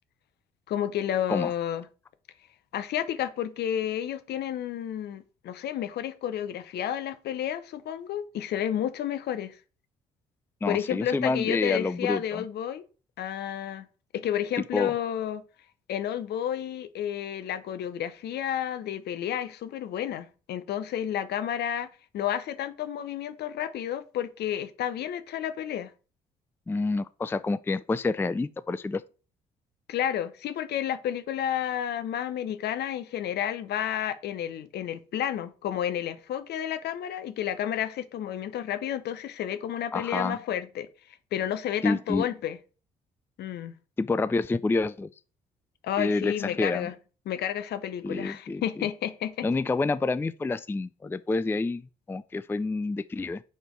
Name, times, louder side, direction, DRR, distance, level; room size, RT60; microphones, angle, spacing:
voice 1, 0.7-1.9 2.7-9.6 10.7-12.9 13.2-13.9 14.1-15.4 15.9-21.9 22.1-25.9 29.9-40.9 41.3-42.6 43.4-43.7 45.8-46.9 47.3-49.4, left 10 dB, 60° left, 0.8 m, -31 dB
voice 2, 10.6-12.4 14.7-14.9 26.7-29.0 39.9-40.4 41.8-42.3 44.0-45.1 46.0-46.9 48.0-48.6 49.4-51.8 52.1-53.4, left 3 dB, 10° left, 0.4 m, -28 dB
5.1 x 4.3 x 4.6 m
hypercardioid pair, 50°, 19 cm